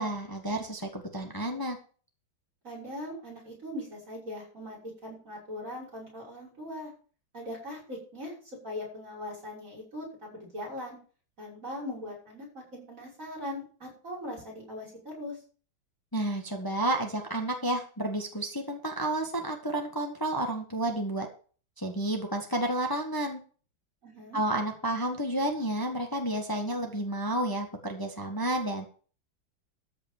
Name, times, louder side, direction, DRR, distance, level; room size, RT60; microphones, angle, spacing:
voice 1, 0.0-1.8 16.1-21.3 21.8-23.4 24.3-28.9, right 1 dB, 10° left, 3 dB, 1.4 m, -31 dB
voice 2, 2.6-6.9 7.3-8.3 8.6-11.0 11.4-15.4 24.0-24.4, left 1 dB, 40° right, -4 dB, 6.5 m, -40 dB
14.0 x 5.2 x 7.3 m, 0.41 s
omnidirectional pair, 2.2 m